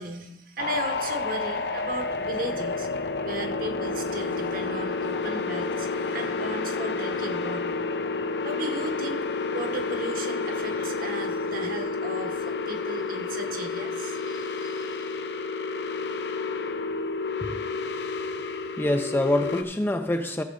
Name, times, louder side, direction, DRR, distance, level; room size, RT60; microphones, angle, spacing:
voice 1, 0.0-2.9 3.2-7.8 8.4-9.2 9.5-15.0, right 1 dB, 50° right, 1.1 m, -36 dB
sound 1, 0.6-19.6, left 4 dB, 70° left, 0.7 m, -30 dB
voice 2, 18.8-20.4, left 1 dB, 10° left, 0.4 m, -25 dB
14.5 x 7.4 x 3.8 m
head